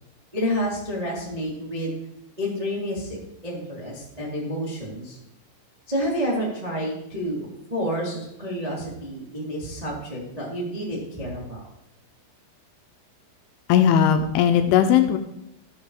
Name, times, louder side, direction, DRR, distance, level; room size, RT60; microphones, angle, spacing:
voice 1, 0.3-1.9 2.4-3.2 3.4-5.2 5.9-7.4 7.7-11.6, equal, 25° right, -5 dB, 0.7 m, -29 dB
voice 2, 13.7-15.2, left 9 dB, 80° left, 7 dB, 2.9 m, -18 dB
13.5 x 6.6 x 4.8 m, 0.80 s
omnidirectional pair, 5.9 m